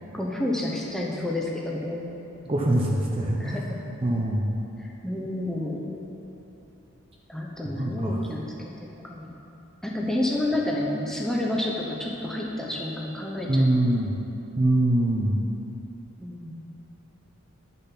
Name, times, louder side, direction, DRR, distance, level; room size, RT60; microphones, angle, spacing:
voice 1, 0.1-2.1 3.4-3.8 4.8-5.8 7.3-9.4 9.8-13.7 16.2-16.7, left 1 dB, ahead, -3 dB, 0.9 m, -30 dB
voice 2, 2.4-3.6 4.0-4.5 7.6-8.2 13.5-14.1 14.6-15.4, right 1 dB, 25° right, -2 dB, 0.7 m, -23 dB
10.0 x 6.8 x 6.0 m, 2.9 s
head